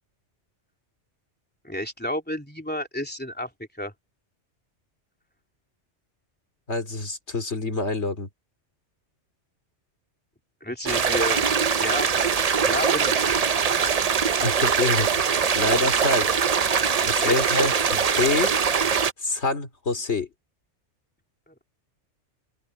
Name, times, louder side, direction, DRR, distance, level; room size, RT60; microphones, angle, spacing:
voice 1, 1.6-3.5 3.8-3.9 10.6-11.4 11.8-12.3 12.6-13.3 15.7-15.8 17.0-17.5, left 1 dB, 10° left, 3.3 m, -31 dB
voice 2, 6.7-8.3 14.4-16.5 17.0-18.5 19.2-20.3, left 2 dB, 70° left, 3.5 m, -26 dB
sound 1, 10.9-19.1, right 6 dB, 40° right, 0.7 m, -22 dB
open air
omnidirectional pair, 1.2 m